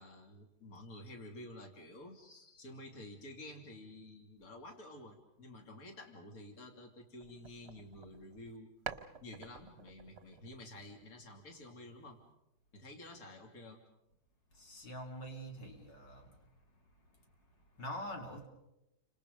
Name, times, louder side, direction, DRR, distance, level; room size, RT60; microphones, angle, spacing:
voice 1, 0.0-8.7 9.2-12.2 12.7-13.8, left 1 dB, 50° left, 3 dB, 3.4 m, -51 dB
sound 1, 7.2-8.6 8.8-11.5, right 7 dB, 40° right, 1.2 m, -49 dB
voice 2, 14.5-16.3 17.8-18.5, equal, 80° left, 2 dB, 3.8 m, -45 dB
30.0 x 26.5 x 5.4 m, 0.90 s
omnidirectional pair, 1.9 m